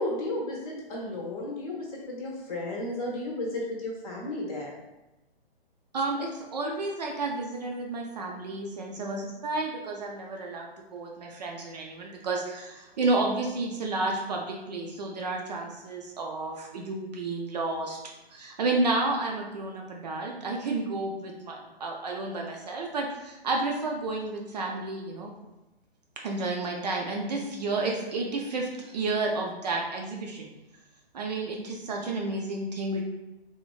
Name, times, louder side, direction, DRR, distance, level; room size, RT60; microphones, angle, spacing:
voice 1, 0.0-4.7, left 1 dB, 35° left, -2 dB, 0.7 m, -33 dB
voice 2, 5.9-18.0 18.3-25.3 26.2-30.5 31.1-33.0, right 2 dB, 45° right, 0 dB, 0.4 m, -31 dB
3.2 x 2.2 x 2.3 m, 0.99 s
figure-of-eight pair, 125°, 31 cm